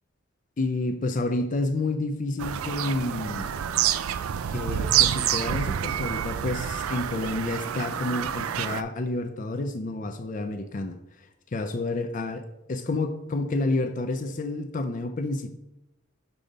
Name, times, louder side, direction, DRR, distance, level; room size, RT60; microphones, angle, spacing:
voice 1, 0.6-3.5 4.5-11.0 11.5-15.5, left 2 dB, 40° left, 8 dB, 0.4 m, -29 dB
Bird vocalization bird call bird song, 2.4-8.8, right 10 dB, 90° right, 0.4 m, -27 dB
6.9 x 5.0 x 3.9 m, 0.89 s
head